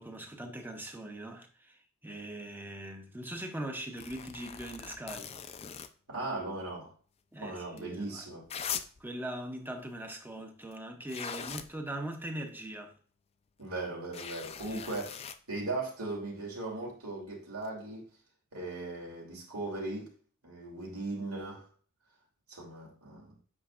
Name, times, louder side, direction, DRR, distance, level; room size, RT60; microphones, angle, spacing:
voice 1, 0.0-5.3 7.3-8.3 9.0-13.0 14.7-14.8, right 1 dB, 10° right, 0.7 m, -41 dB
sound 1, 4.0-5.9 7.8-7.9 8.5-9.0 10.7-10.8 11.1-11.7 14.1-15.4 17.6-17.7, left 8 dB, 30° left, 0.4 m, -40 dB
voice 2, 6.1-6.9 7.4-8.5 13.6-15.2 15.5-18.0 18.5-20.1 20.4-21.7 22.5-23.3, right 2 dB, 80° right, 2.8 m, -38 dB
8.6 x 5.1 x 2.4 m
head